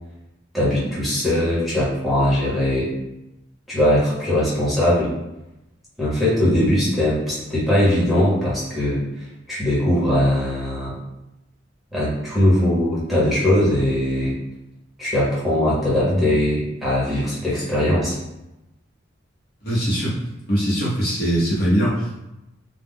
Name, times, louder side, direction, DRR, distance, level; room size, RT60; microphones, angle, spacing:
voice 1, 0.5-2.9 3.7-5.1 6.0-9.0 9.5-10.9 11.9-14.3 15.0-18.2, left 1 dB, ahead, -9 dB, 0.9 m, -20 dB
voice 2, 19.6-20.1 20.5-22.1, equal, 55° left, -7 dB, 0.9 m, -21 dB
2.4 x 2.1 x 3.6 m, 0.94 s
head